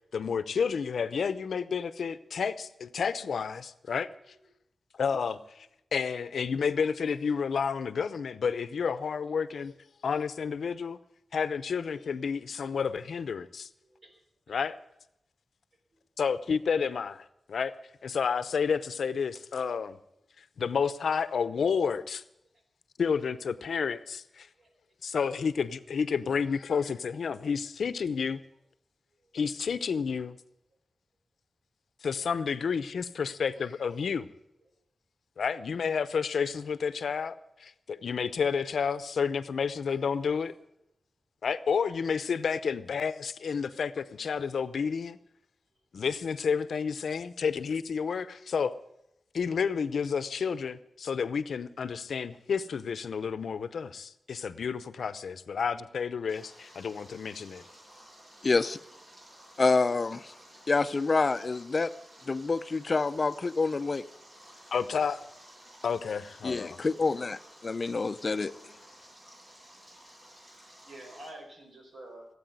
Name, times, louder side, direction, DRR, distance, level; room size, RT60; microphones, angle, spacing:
voice 1, 0.1-4.1 4.9-9.7 10.0-11.0 11.3-13.7 14.5-14.8 16.2-17.7 18.0-20.0 20.6-22.2 23.0-24.5 25.0-28.4 29.3-30.4 32.0-34.3 35.4-40.5 41.4-45.2 45.9-48.8 49.3-57.6 64.7-65.3 65.8-66.8, left 6 dB, 90° left, 15 dB, 0.7 m, -30 dB
voice 2, 13.8-14.2 14.5-14.6 16.2-16.3 22.5-22.6 24.5-24.7 26.1-26.6 29.2-29.3 34.6-34.7 36.6-36.7 70.8-72.3, right 1 dB, 70° right, 3 dB, 4.7 m, -50 dB
Stream, 56.3-71.3, equal, 40° right, 7.7 m, -54 dB
voice 3, 58.4-58.8 59.6-60.3 60.7-61.9 62.3-64.0 66.4-68.5, left 3 dB, 40° left, 13 dB, 0.5 m, -27 dB
17.0 x 8.5 x 9.4 m, 0.82 s
wide cardioid pair, 120°, 0 cm